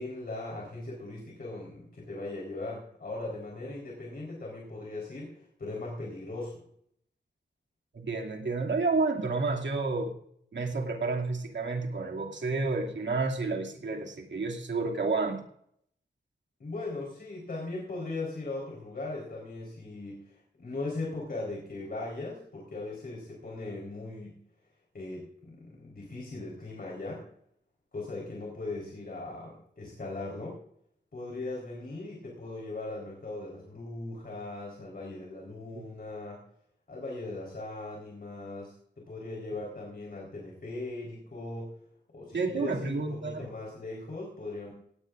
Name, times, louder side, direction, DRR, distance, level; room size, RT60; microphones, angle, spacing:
voice 1, 0.0-6.6 16.6-24.4 24.9-27.3 27.9-30.6 31.1-36.4 36.9-41.7 42.1-44.7, left 2 dB, 55° left, -3 dB, 4.2 m, -39 dB
voice 2, 7.9-10.1 10.5-15.4 42.3-43.4, right 3 dB, 90° right, 1 dB, 2.5 m, -30 dB
17.5 x 17.0 x 2.5 m, 0.69 s
wide cardioid pair, 125°, 18 cm